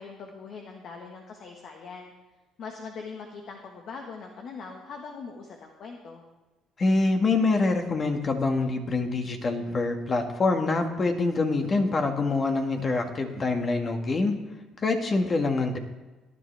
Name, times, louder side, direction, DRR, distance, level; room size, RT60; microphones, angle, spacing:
voice 1, 0.0-2.1 2.6-6.2, left 5 dB, 60° left, 2 dB, 1.6 m, -41 dB
voice 2, 6.8-14.3 14.8-15.8, left 3 dB, 40° left, 4 dB, 1.9 m, -25 dB
18.0 x 11.0 x 3.5 m, 1.2 s
supercardioid pair, 70°, 0 cm